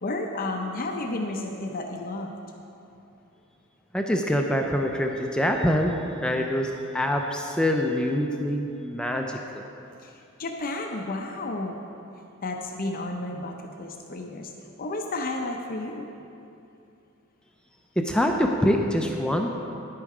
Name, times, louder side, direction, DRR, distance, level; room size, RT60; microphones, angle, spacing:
voice 1, 0.0-2.3 10.0-11.8 12.4-14.5 14.8-16.1, left 2 dB, 45° left, 2 dB, 0.6 m, -32 dB
voice 2, 3.9-5.9 6.2-9.6 18.0-19.6, equal, 5° left, 2 dB, 0.5 m, -25 dB
10.5 x 8.6 x 4.9 m, 2.7 s
head